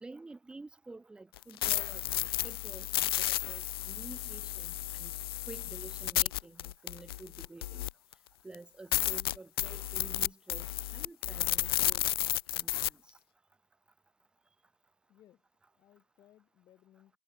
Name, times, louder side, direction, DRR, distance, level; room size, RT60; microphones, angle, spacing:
voice 1, 0.0-5.1 5.5-7.9 8.4-10.7 10.9-13.2, right 3 dB, 5° right, 2.0 m, -50 dB
sound 1, 1.4-8.1 8.5-8.6 8.9-12.9, left 14 dB, 40° left, 0.4 m, -32 dB
voice 2, 15.1-17.2, left 12 dB, 20° left, 4.8 m, -63 dB
hypercardioid pair, 135°, 19 cm